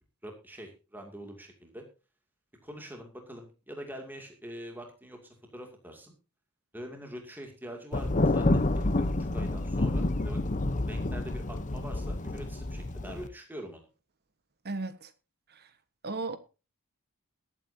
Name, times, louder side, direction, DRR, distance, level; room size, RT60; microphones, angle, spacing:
voice 1, 0.2-1.8 2.6-5.2 5.5-6.1 6.7-10.4 10.9-13.9, equal, 10° right, 2.4 m, -44 dB
Thunder, 7.9-13.3, left 2 dB, 35° left, 0.8 m, -28 dB
voice 2, 14.6-15.1 16.0-16.4, right 3 dB, 45° right, 1.3 m, -34 dB
22.0 x 8.6 x 2.7 m
head